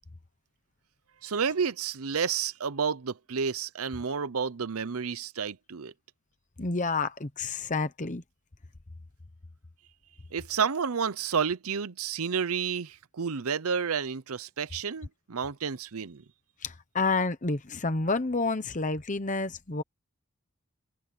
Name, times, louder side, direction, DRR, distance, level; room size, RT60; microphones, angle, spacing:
voice 1, 1.2-5.9 10.3-16.2, right 6 dB, 75° right, 0.7 m, -30 dB
voice 2, 6.6-8.2 16.6-19.8, left 3 dB, 35° left, 1.0 m, -29 dB
head